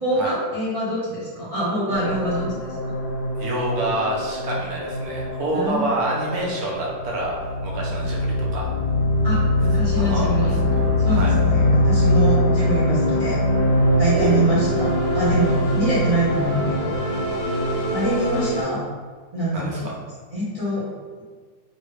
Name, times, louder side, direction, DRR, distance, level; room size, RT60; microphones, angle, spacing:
voice 1, 0.0-2.9 5.5-5.9 9.2-10.5 11.0-13.4 14.0-16.9 17.9-18.8 19.3-19.9 20.3-20.8, right 1 dB, 35° right, -10 dB, 0.5 m, -25 dB
sound 1, 1.9-18.6, left 1 dB, 70° left, 1.1 m, -22 dB
voice 2, 3.4-7.3 7.6-8.6 9.9-11.3 14.1-14.4 19.5-19.9, right 1 dB, 65° right, -3 dB, 1.0 m, -27 dB
3.1 x 2.7 x 2.9 m, 1.5 s
omnidirectional pair, 2.0 m